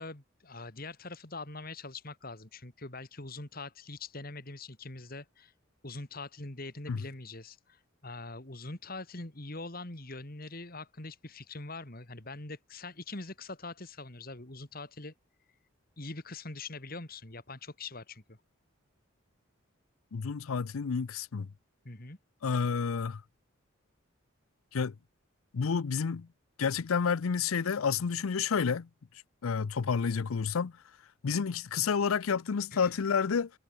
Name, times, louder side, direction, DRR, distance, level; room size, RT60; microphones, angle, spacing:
voice 1, 0.0-5.5 5.8-15.1 16.0-18.4 21.8-22.2 32.7-32.9, left 3 dB, 45° left, 2.3 m, -43 dB
voice 2, 20.1-21.5 22.4-23.2 24.7-24.9 25.5-26.3 26.6-28.9 29.4-30.7 31.2-33.5, left 6 dB, 85° left, 0.5 m, -30 dB
head